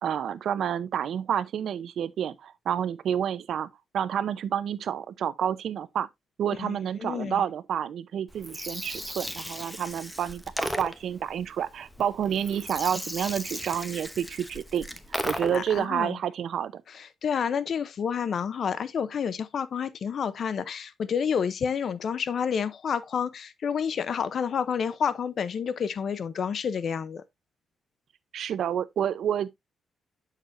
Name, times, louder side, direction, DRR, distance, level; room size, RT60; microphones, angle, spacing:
voice 1, 0.0-3.7 3.9-6.1 6.4-14.9 15.2-16.8 28.3-29.5, right 9 dB, 65° right, 0.6 m, -29 dB
voice 2, 6.6-7.4 15.5-16.2 16.9-27.2, left 7 dB, 55° left, 0.7 m, -29 dB
Gurgling, 8.3-15.8, equal, 5° left, 0.9 m, -36 dB
7.6 x 6.6 x 2.6 m
cardioid pair, 125°, 0 cm